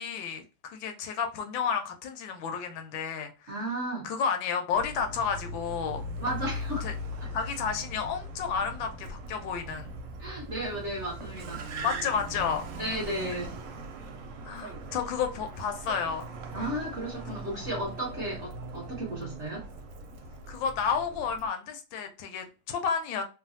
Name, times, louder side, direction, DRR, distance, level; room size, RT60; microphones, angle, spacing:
voice 1, 0.0-3.5 4.0-6.0 6.8-6.9 7.3-9.9 11.8-12.7 14.4-16.3 20.5-23.2, left 6 dB, 80° left, 1.3 m, -31 dB
voice 2, 3.5-4.0 6.2-6.9 10.2-11.7 12.7-13.5 16.5-19.6, right 1 dB, 50° right, 0.9 m, -34 dB
Car, 4.7-21.5, right 1 dB, 75° right, 1.2 m, -40 dB
3.1 x 2.2 x 2.6 m
omnidirectional pair, 2.1 m